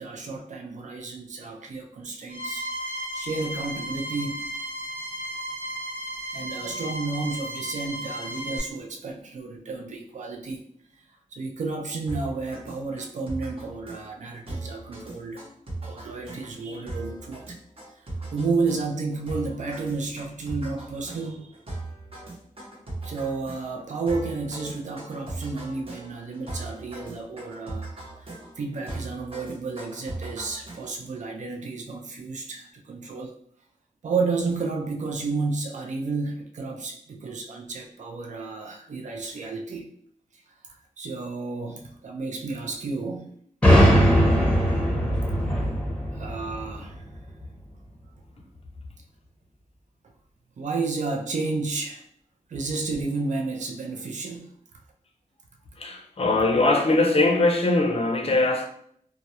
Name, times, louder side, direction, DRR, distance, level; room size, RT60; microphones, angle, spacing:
voice 1, 0.0-2.6 3.1-4.5 6.3-10.6 11.3-15.4 15.9-17.6 18.3-21.5 23.0-27.9 28.2-33.3 34.0-39.9 40.6-43.3 44.7-44.8 46.1-47.0 50.6-52.0 52.5-54.5, right 3 dB, 55° right, 0.4 m, -31 dB
sound 1, 2.3-8.6, equal, 80° right, 0.7 m, -34 dB
sound 2, 12.1-31.2, right 2 dB, 40° right, 0.8 m, -39 dB
sound 3, 43.6-47.3, equal, 10° left, 0.7 m, -20 dB
voice 2, 55.8-58.7, left 2 dB, 45° left, 0.5 m, -21 dB
2.2 x 2.1 x 2.7 m
wide cardioid pair, 80°, 14 cm